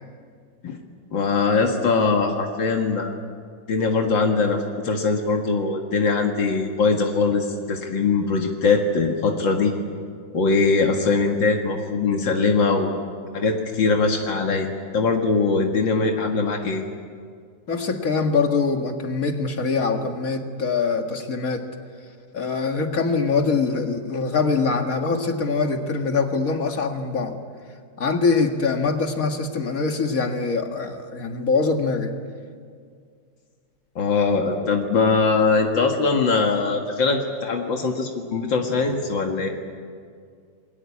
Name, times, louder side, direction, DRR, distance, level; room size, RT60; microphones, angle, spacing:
voice 1, 1.1-3.1 3.7-9.7 10.3-13.0 13.3-14.7 14.9-16.8 34.0-39.5, left 4 dB, 80° left, 2 dB, 2.6 m, -21 dB
voice 2, 17.7-21.6 22.3-27.4 28.0-32.1, left 4 dB, 50° left, 5 dB, 2.3 m, -23 dB
28.5 x 21.5 x 8.6 m, 2.1 s
omnidirectional pair, 2.0 m